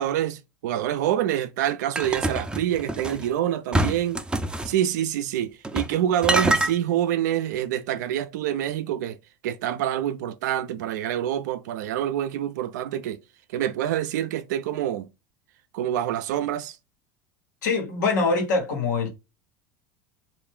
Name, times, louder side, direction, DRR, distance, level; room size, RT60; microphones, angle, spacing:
voice 1, 0.0-4.2 4.6-9.2 9.4-13.2 13.5-15.1 15.7-16.8, right 11 dB, 75° right, 0.5 m, -26 dB
sound 1, 2.0-3.2 3.7-4.7 5.6-6.0 6.2-6.7, right 1 dB, 10° right, 0.5 m, -25 dB
voice 2, 17.6-19.1, left 4 dB, 85° left, 1.4 m, -23 dB
3.2 x 2.6 x 3.6 m
hypercardioid pair, 95°, 10 cm